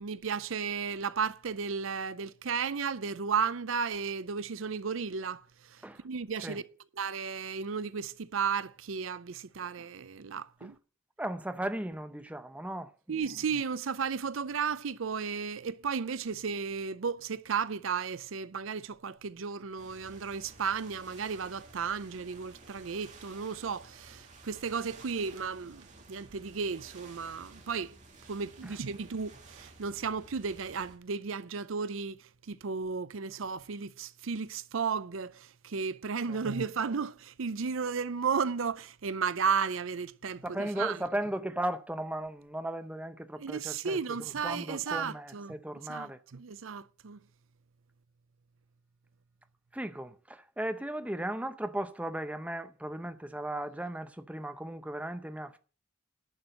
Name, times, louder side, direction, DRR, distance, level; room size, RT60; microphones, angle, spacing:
voice 1, 0.0-6.6 7.0-10.8 13.1-27.9 28.3-41.0 43.4-45.6 45.9-47.2, right 6 dB, 70° right, 0.6 m, -34 dB
voice 2, 11.2-13.2 28.6-28.8 36.3-36.4 40.4-46.2 49.7-55.6, right 1 dB, 5° right, 0.7 m, -36 dB
sound 1, 19.8-31.0, right 3 dB, 35° right, 2.4 m, -53 dB
11.0 x 6.2 x 7.7 m
head